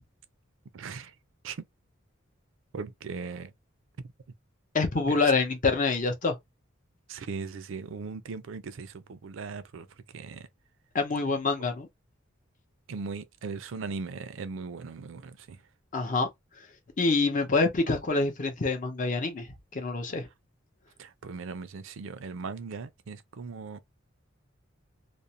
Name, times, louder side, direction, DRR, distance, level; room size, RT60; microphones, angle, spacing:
voice 1, 0.7-1.1 1.4-1.6 2.7-3.5 5.1-5.2 7.1-9.9 10.1-10.5 12.9-15.6 21.0-23.8, right 4 dB, 70° right, 0.4 m, -38 dB
voice 2, 4.7-6.4 10.9-11.9 15.9-16.3 16.6-16.7 17.0-20.3, left 3 dB, 40° left, 0.7 m, -26 dB
2.5 x 2.0 x 2.7 m
head